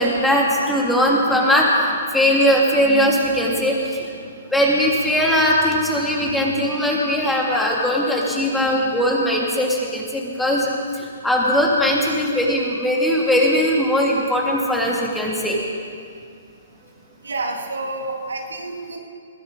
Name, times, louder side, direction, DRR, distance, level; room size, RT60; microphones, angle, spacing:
voice 1, 0.0-4.1 4.5-15.6, equal, 5° left, -3 dB, 3.0 m, -19 dB
voice 2, 17.2-19.0, right 2 dB, 80° right, 1 dB, 2.5 m, -29 dB
21.5 x 15.0 x 4.2 m, 2.2 s
hypercardioid pair, 130°, 0 cm